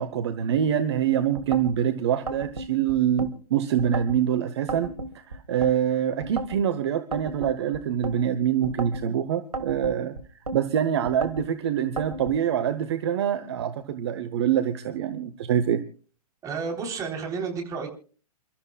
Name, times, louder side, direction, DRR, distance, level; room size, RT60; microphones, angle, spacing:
voice 1, 0.0-10.1 10.5-15.8, right 9 dB, 45° right, 11 dB, 1.1 m, -25 dB
sound 1, 1.4-1.8 2.3-3.3 3.8-4.2 4.7-5.7 6.2-6.6 7.1-8.2 8.6-9.1 9.5-10.6 11.1-11.5 12.0-12.4, right 2 dB, 75° right, 2.4 m, -34 dB
voice 2, 16.4-17.9, right 5 dB, 15° right, 2 dB, 3.8 m, -31 dB
29.0 x 13.5 x 2.3 m, 0.40 s
figure-of-eight pair, 115°, 20 cm